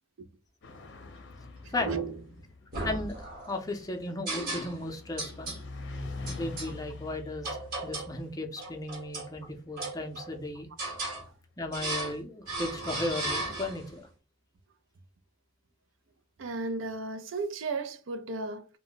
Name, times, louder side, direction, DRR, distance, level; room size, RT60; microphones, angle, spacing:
sound 1, 0.6-11.6, left 2 dB, 65° left, 0.6 m, -45 dB
sound 2, 1.8-2.3 2.7-3.6 4.3-4.9 5.2-5.6 6.3-6.7 7.4-8.2 8.6-9.3 9.8-10.4 10.8-11.2 11.7-12.2 12.5-13.9, right 2 dB, 50° right, 1.1 m, -35 dB
voice 1, 2.8-5.6 6.3-7.5 7.8-10.7 11.6-14.1, left 2 dB, 20° left, 0.5 m, -35 dB
voice 2, 16.4-18.7, right 3 dB, 75° right, 0.4 m, -34 dB
2.2 x 2.1 x 3.8 m
head